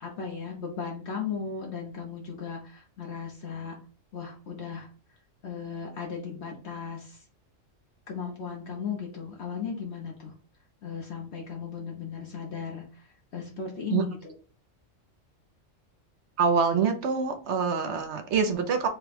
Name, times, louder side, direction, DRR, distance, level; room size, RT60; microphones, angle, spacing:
voice 1, 0.0-3.8 4.1-4.9 5.4-7.2 8.1-10.3 10.8-14.2, left 6 dB, 60° left, 0 dB, 1.0 m, -36 dB
voice 2, 16.4-18.9, right 6 dB, 65° right, 6 dB, 0.9 m, -25 dB
4.2 x 2.2 x 4.0 m, 0.38 s
omnidirectional pair, 1.3 m